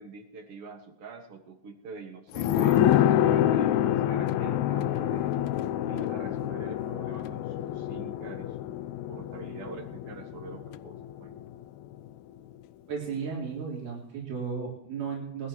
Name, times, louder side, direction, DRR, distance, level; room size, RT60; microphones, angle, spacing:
voice 1, 0.0-5.3 5.9-11.4, right 4 dB, 50° right, 5 dB, 2.2 m, -45 dB
sound 1, 2.3-11.6 11.9-12.0, left 11 dB, 90° left, 1.6 m, -27 dB
voice 2, 12.9-15.5, right 6 dB, 70° right, -3 dB, 5.1 m, -34 dB
20.5 x 12.5 x 3.0 m, 0.80 s
omnidirectional pair, 3.9 m